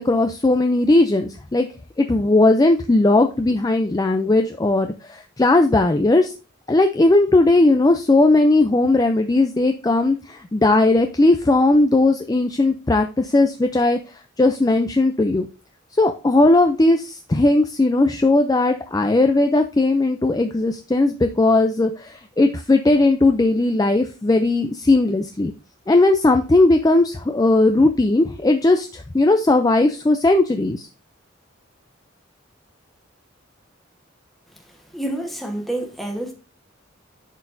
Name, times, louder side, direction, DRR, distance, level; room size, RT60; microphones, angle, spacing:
voice 1, 0.0-1.7 2.0-6.3 6.7-14.0 14.4-15.5 16.0-25.5 25.9-30.9, left 2 dB, 20° left, 0.4 m, -17 dB
voice 2, 34.9-36.3, right 1 dB, ahead, 1.1 m, -28 dB
11.0 x 4.2 x 2.6 m
head